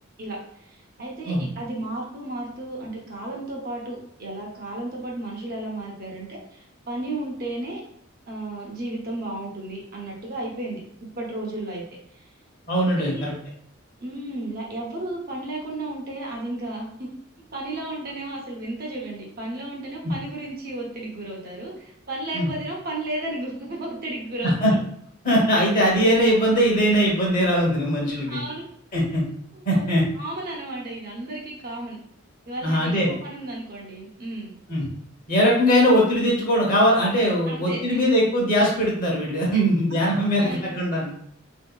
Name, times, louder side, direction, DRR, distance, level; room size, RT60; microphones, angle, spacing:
voice 1, 0.2-7.8 8.3-10.8 11.2-11.8 12.1-12.3 13.0-13.2 14.0-17.1 17.5-24.7 28.3-28.6 29.5-29.8 30.2-32.0 32.5-34.6 37.5-38.1 39.5-39.6 40.4-40.7, right 1 dB, 45° right, -2 dB, 0.8 m, -33 dB
voice 2, 12.7-13.3 20.0-20.1 22.3-22.5 24.6-24.7 25.2-28.4 28.9-29.2 29.6-30.0 32.6-33.1 34.7-34.9 35.3-41.1, equal, 40° left, -3 dB, 0.9 m, -20 dB
3.5 x 2.7 x 2.3 m, 0.67 s
head